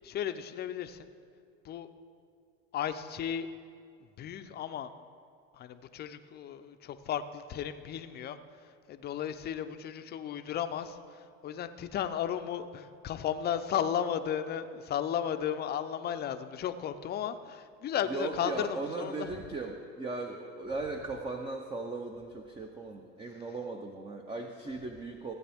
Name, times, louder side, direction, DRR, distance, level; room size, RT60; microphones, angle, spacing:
voice 1, 0.0-1.1 1.6-1.9 2.7-3.5 4.2-4.9 5.5-8.4 8.9-19.3, left 9 dB, 30° left, 10 dB, 0.6 m, -34 dB
voice 2, 18.1-25.3, right 3 dB, 15° right, 4 dB, 0.6 m, -38 dB
15.5 x 8.4 x 3.5 m, 2.4 s
supercardioid pair, 115°, 32 cm